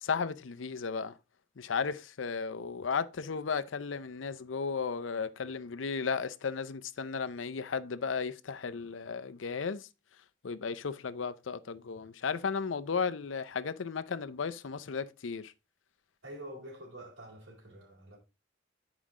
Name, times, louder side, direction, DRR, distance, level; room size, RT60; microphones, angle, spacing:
voice 1, 0.0-1.2 1.6-9.9 10.4-15.5, left 5 dB, 85° left, 0.6 m, -34 dB
voice 2, 16.2-18.2, right 1 dB, 70° right, 3.5 m, -47 dB
9.2 x 4.9 x 3.6 m
head